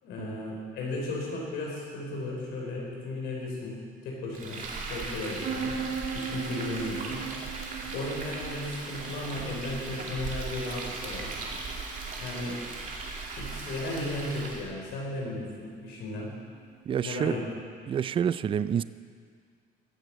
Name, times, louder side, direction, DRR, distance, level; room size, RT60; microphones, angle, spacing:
voice 1, 0.0-3.8 4.0-4.6 4.9-5.7 6.1-7.2 7.9-11.3 12.2-12.6 13.4-16.3 17.0-17.4, left 2 dB, 85° left, -3 dB, 4.0 m, -35 dB
Frying (food), 4.3-14.7, right 3 dB, 50° right, 2.4 m, -38 dB
sound 1, 5.4-16.9, right 6 dB, 75° right, 1.4 m, -41 dB
voice 2, 16.9-17.4 17.9-18.8, right 8 dB, 30° right, 15 dB, 0.4 m, -28 dB
14.5 x 7.9 x 7.5 m, 2.1 s
cardioid pair, 115°, 17 cm